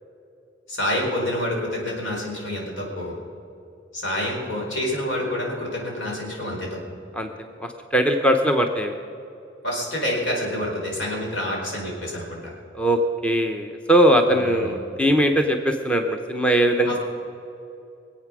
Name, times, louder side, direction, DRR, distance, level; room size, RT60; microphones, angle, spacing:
voice 1, 0.7-3.2 3.9-6.8 9.6-12.5 14.3-14.7 16.8-17.0, left 1 dB, 85° left, -2 dB, 4.5 m, -28 dB
voice 2, 7.6-8.9 12.7-17.0, right 1 dB, 5° left, 4 dB, 0.7 m, -20 dB
23.5 x 8.4 x 6.1 m, 2.8 s
head